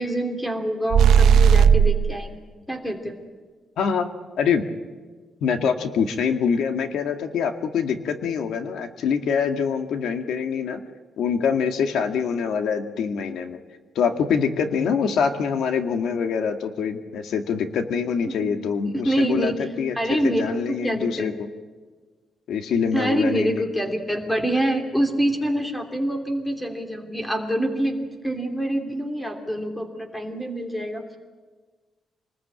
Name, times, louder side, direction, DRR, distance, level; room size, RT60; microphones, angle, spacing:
voice 1, 0.0-2.4 2.7-3.1 18.3-18.5 19.0-19.5 19.9-21.3 22.9-28.0 28.2-31.2, right 1 dB, 5° left, 5 dB, 3.0 m, -25 dB
sound 1, 0.9-2.1, right 7 dB, 80° right, 0.7 m, -15 dB
voice 2, 3.8-4.1 4.4-4.6 5.4-10.8 11.2-13.6 14.0-20.0 20.2-21.5 22.5-23.6, left 6 dB, 80° left, 7 dB, 2.0 m, -24 dB
27.5 x 20.0 x 8.9 m, 1.4 s
wide cardioid pair, 175°, 0 cm